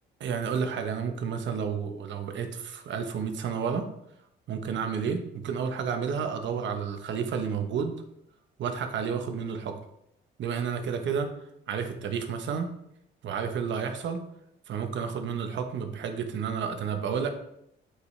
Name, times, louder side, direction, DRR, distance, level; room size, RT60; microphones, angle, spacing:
voice 1, 0.2-3.9 4.5-8.0 8.6-9.7 10.4-11.3 11.7-12.7 13.2-14.2 14.7-17.3, right 6 dB, 70° right, 6 dB, 1.0 m, -31 dB
8.0 x 5.0 x 3.3 m, 0.78 s
cardioid pair, 90°, 20 cm